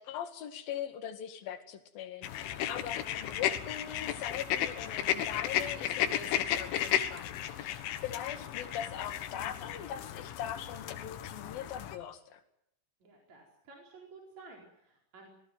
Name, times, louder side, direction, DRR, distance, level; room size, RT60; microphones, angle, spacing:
voice 1, 0.0-12.4, left 9 dB, 55° left, 7 dB, 3.4 m, -41 dB
sound 1, 2.2-12.0, left 11 dB, 85° left, 3.9 m, -34 dB
voice 2, 13.0-15.3, right 3 dB, 40° right, -1 dB, 5.4 m, -53 dB
26.0 x 19.0 x 8.0 m, 0.77 s
omnidirectional pair, 5.4 m